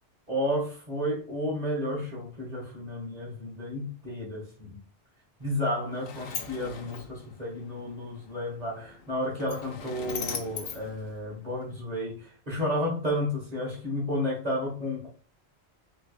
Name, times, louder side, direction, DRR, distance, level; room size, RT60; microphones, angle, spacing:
voice 1, 0.3-4.8 5.4-15.1, left 1 dB, 40° right, -3 dB, 1.4 m, -32 dB
Sliding door, 5.4-11.8, left 6 dB, 65° left, 0.8 m, -41 dB
3.2 x 3.1 x 2.4 m, 0.39 s
omnidirectional pair, 1.1 m